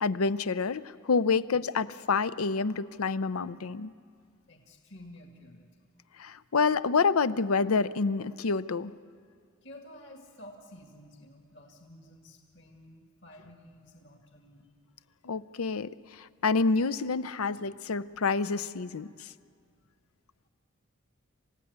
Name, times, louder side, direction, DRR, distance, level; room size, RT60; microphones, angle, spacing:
voice 1, 0.0-3.9 6.2-8.9 15.2-19.3, left 4 dB, 90° left, 14 dB, 0.6 m, -28 dB
voice 2, 4.5-5.7 9.6-14.7 19.6-19.8, left 1 dB, 55° left, 2 dB, 2.0 m, -51 dB
27.5 x 16.0 x 9.5 m, 2.1 s
head